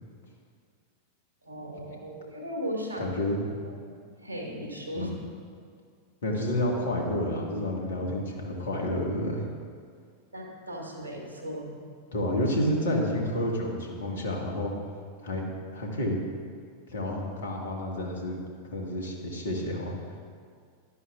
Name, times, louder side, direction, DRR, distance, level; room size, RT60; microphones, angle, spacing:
voice 1, 1.4-3.2 3.6-3.8 4.1-5.1 10.3-11.8, equal, 90° left, -2 dB, 2.2 m, -37 dB
voice 2, 3.0-3.6 4.9-5.1 6.2-9.5 12.1-14.7 15.2-15.5 15.7-16.2 16.9-20.2, left 1 dB, 65° left, 0 dB, 1.9 m, -30 dB
15.0 x 11.5 x 2.5 m, 2.1 s
figure-of-eight pair, 90°, 0 cm